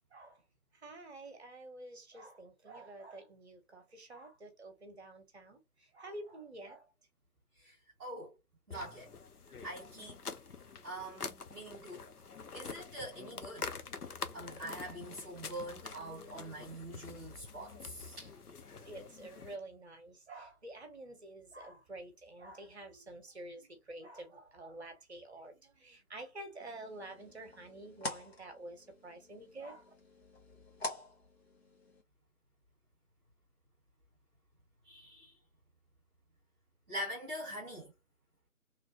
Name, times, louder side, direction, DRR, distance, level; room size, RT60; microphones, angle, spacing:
voice 1, 0.1-0.4 0.7-6.9 18.7-29.9, right 2 dB, 45° right, 1.0 m, -49 dB
voice 2, 8.0-8.3 8.7-9.1 9.6-10.2 10.8-12.0 12.5-13.7 14.3-18.3 34.8-35.3 36.9-37.9, right 1 dB, 5° right, 1.0 m, -44 dB
sound 1, 8.7-19.6, left 5 dB, 90° left, 0.7 m, -46 dB
sound 2, 26.6-32.0, left 2 dB, 45° left, 1.0 m, -46 dB
3.2 x 2.3 x 2.8 m
figure-of-eight pair, 155°, 44 cm